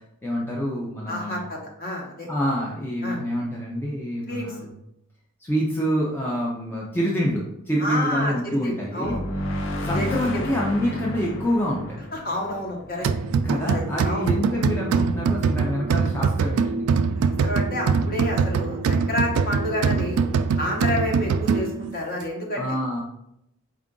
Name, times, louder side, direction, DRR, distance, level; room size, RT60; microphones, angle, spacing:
voice 1, 0.2-1.4 2.3-4.7 5.4-9.2 9.8-12.0 13.4-16.9 22.6-23.0, equal, 10° left, -4 dB, 0.4 m, -26 dB
voice 2, 1.1-2.3 3.0-3.2 4.3-4.6 7.8-9.2 9.9-10.5 12.1-13.1 13.6-14.3 17.2-20.2 20.6-22.8, left 1 dB, 45° left, -1 dB, 1.0 m, -29 dB
sound 1, 9.0-13.6, left 1 dB, 60° left, 0.6 m, -31 dB
sound 2, 13.0-21.9, right 5 dB, 80° right, 0.3 m, -23 dB
4.5 x 2.4 x 3.7 m, 0.79 s
head